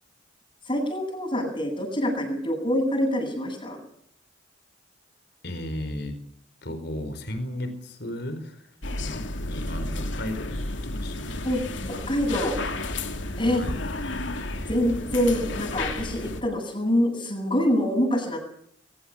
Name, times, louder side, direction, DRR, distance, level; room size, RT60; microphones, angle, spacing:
voice 1, 0.6-3.8 11.4-12.6 13.4-13.6 14.7-18.4, equal, 30° left, -4 dB, 7.9 m, -25 dB
voice 2, 5.4-6.2 6.6-11.4 13.5-13.8 14.5-14.7, left 1 dB, 60° left, 9 dB, 4.4 m, -35 dB
sound 1, 8.8-16.4, left 2 dB, 85° left, 2.8 m, -32 dB
23.0 x 21.5 x 7.4 m, 0.66 s
head